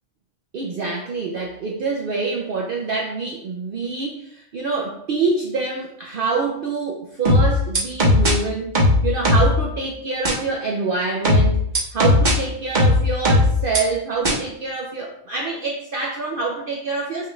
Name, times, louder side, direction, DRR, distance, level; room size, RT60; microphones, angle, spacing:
voice 1, 0.5-8.7 9.0-17.3, right 4 dB, 55° right, -2 dB, 0.6 m, -26 dB
sound 1, 7.3-8.3 8.8-9.6 10.3-10.4 11.3-12.3 12.8-13.8 14.3-14.4, left 1 dB, 40° right, 1.1 m, -16 dB
5.7 x 2.4 x 3.1 m, 0.74 s
omnidirectional pair, 1.3 m